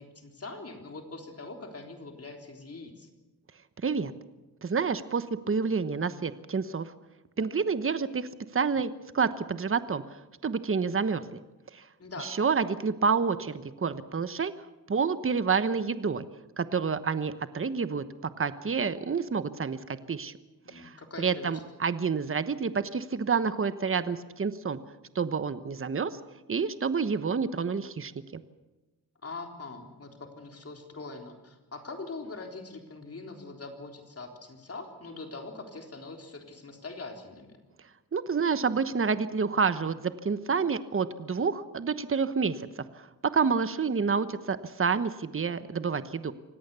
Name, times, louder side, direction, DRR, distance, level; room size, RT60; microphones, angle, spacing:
voice 1, 0.0-3.1 12.0-12.4 20.6-21.6 29.2-37.6, left 3 dB, 35° left, 3 dB, 3.8 m, -42 dB
voice 2, 4.6-6.9 7.4-8.3 8.5-10.0 10.4-11.2 11.7-11.8 12.2-14.5 14.9-16.2 16.6-18.0 18.4-19.8 20.1-20.3 20.7-24.8 25.1-26.2 26.5-28.4 38.1-42.7 43.2-46.3, right 5 dB, 35° right, 12 dB, 1.1 m, -28 dB
25.5 x 17.5 x 7.0 m, 1.1 s
cardioid pair, 80°, 39 cm